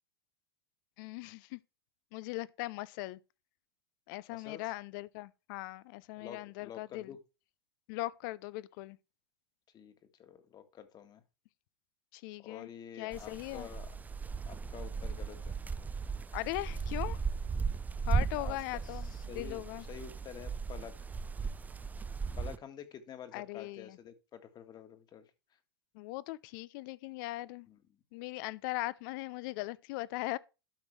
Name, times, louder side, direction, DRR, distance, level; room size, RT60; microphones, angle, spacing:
voice 1, 1.0-1.6 2.1-3.2 4.1-7.1 7.9-9.0 12.1-12.7 13.0-13.7 16.3-17.2 18.1-19.1 19.3-19.8 23.3-24.0 25.9-27.7 28.1-30.4, left 19 dB, 55° left, 0.6 m, -39 dB
voice 2, 4.3-4.7 6.2-7.2 9.7-11.2 12.4-13.9 14.5-15.6 18.4-21.1 22.4-25.3 27.7-27.8, left 8 dB, 35° left, 1.7 m, -49 dB
sound 1, 13.1-22.6, right 5 dB, 15° right, 0.4 m, -36 dB
12.0 x 6.1 x 3.3 m
hypercardioid pair, 100°, 13 cm